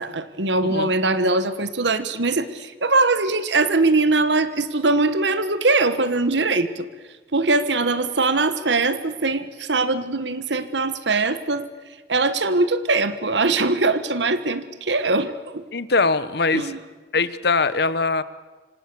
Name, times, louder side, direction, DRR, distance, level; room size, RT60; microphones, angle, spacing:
voice 1, 0.0-6.9 7.3-11.7 12.1-15.6 16.5-16.8, right 3 dB, 75° right, 12 dB, 1.4 m, -21 dB
voice 2, 15.7-16.8 17.1-18.2, left 3 dB, 65° left, 15 dB, 1.1 m, -22 dB
26.5 x 26.0 x 7.0 m, 1.3 s
head